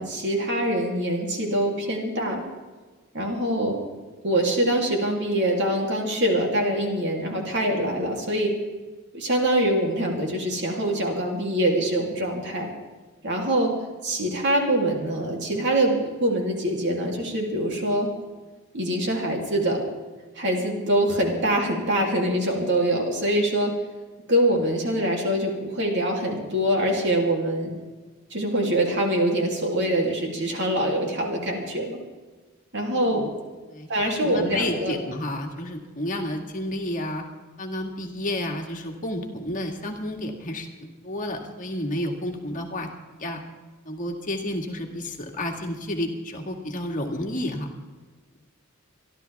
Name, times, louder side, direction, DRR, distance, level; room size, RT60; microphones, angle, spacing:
voice 1, 0.0-2.4 3.1-3.8 4.2-8.6 9.1-12.7 13.2-13.8 14.0-18.1 18.7-19.8 20.3-23.7 24.3-27.7 28.3-32.0 32.7-33.3 33.9-35.0, right 1 dB, 55° right, 0 dB, 3.1 m, -24 dB
voice 2, 32.9-33.3 33.7-37.2 37.6-40.7 41.0-42.9 43.2-43.4 43.9-47.7, left 1 dB, 40° left, 3 dB, 1.9 m, -31 dB
26.0 x 12.0 x 3.5 m, 1.3 s
head